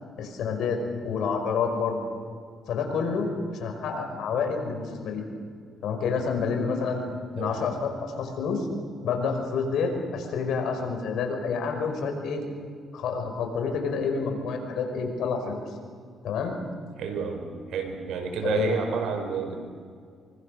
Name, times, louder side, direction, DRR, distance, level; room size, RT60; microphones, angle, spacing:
voice 1, 0.2-2.0 2.7-5.3 5.8-7.0 7.3-8.7 9.0-12.4 12.9-15.6 16.2-16.6 18.4-18.8, left 5 dB, 75° left, 4 dB, 5.4 m, -28 dB
voice 2, 17.0-19.6, right 5 dB, 80° right, 4 dB, 5.3 m, -30 dB
25.5 x 25.0 x 6.7 m, 2.1 s
cardioid pair, 90°, 0 cm